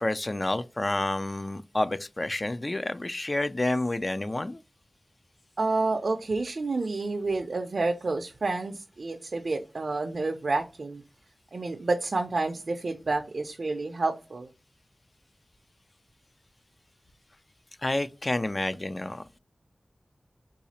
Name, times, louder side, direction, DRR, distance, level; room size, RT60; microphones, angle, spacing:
voice 1, 0.0-4.6 17.8-19.4, left 2 dB, 40° left, 0.3 m, -29 dB
voice 2, 5.6-11.0 11.5-14.5, right 3 dB, 75° right, 0.4 m, -29 dB
4.0 x 2.4 x 2.8 m
wide cardioid pair, 50°, 0 cm